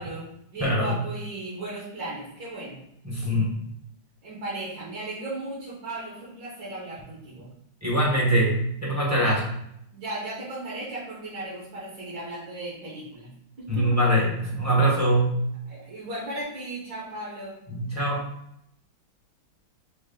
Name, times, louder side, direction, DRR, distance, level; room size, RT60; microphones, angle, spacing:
voice 1, 0.0-2.8 4.2-7.5 9.2-9.4 9.9-13.3 13.8-13.9 15.7-17.6, right 2 dB, 65° right, -8 dB, 2.2 m, -36 dB
voice 2, 0.6-0.9 3.0-3.5 7.8-9.4 13.7-15.3 17.7-18.2, right 1 dB, 15° right, -5 dB, 0.6 m, -23 dB
6.1 x 2.2 x 3.8 m, 0.77 s
omnidirectional pair, 2.1 m